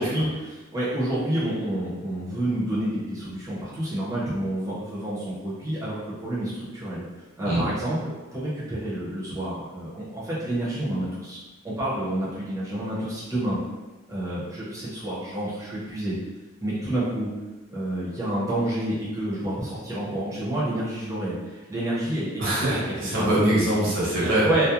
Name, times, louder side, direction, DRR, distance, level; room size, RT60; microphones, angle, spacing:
voice 1, 0.0-6.0 6.2-7.0 7.4-11.4 11.6-13.6 14.1-16.2 16.6-17.3 17.7-22.8 23.1-23.4 24.2-24.6, right 1 dB, 15° right, -9 dB, 0.7 m, -29 dB
voice 2, 22.4-24.5, right 1 dB, 65° right, -7 dB, 0.9 m, -23 dB
2.4 x 2.0 x 2.9 m, 1.2 s
head